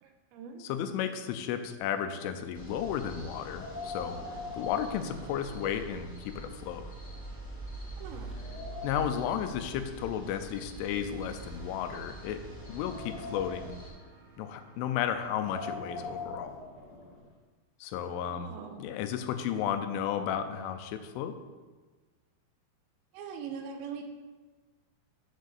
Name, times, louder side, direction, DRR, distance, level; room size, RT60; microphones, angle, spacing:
voice 1, 0.0-0.6 8.0-8.3 18.3-18.8 23.1-24.0, right 6 dB, 80° right, 4 dB, 2.8 m, -42 dB
voice 2, 0.6-4.2 4.5-6.9 8.8-12.4 12.7-13.7 14.4-16.6 17.8-18.5 18.8-21.3, left 9 dB, 85° left, 8 dB, 3.2 m, -33 dB
sound 1, 2.5-13.9, equal, 5° left, 1.1 m, -45 dB
Wind, 3.4-6.0 6.4-6.5 7.1-7.2 7.7-9.3 10.2-11.7 12.3-13.9 15.2-17.3, left 3 dB, 55° left, 2.6 m, -43 dB
sound 2, 5.0-8.4 11.1-15.7, right 6 dB, 65° right, 2.0 m, -55 dB
7.9 x 6.6 x 6.5 m, 1.3 s
omnidirectional pair, 5.5 m